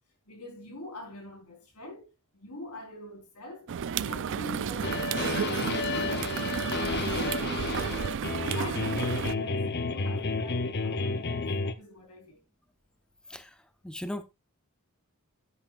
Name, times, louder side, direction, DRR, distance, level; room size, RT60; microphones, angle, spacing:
voice 1, 0.3-8.0 8.4-12.4, left 1 dB, 80° left, 4.4 m, -44 dB
sound 1, 3.7-9.3, right 7 dB, 55° right, 0.4 m, -32 dB
sound 2, 4.8-11.7, left 3 dB, 50° left, 0.8 m, -31 dB
voice 2, 13.8-14.2, left 1 dB, 5° left, 0.6 m, -36 dB
9.8 x 9.1 x 2.5 m
head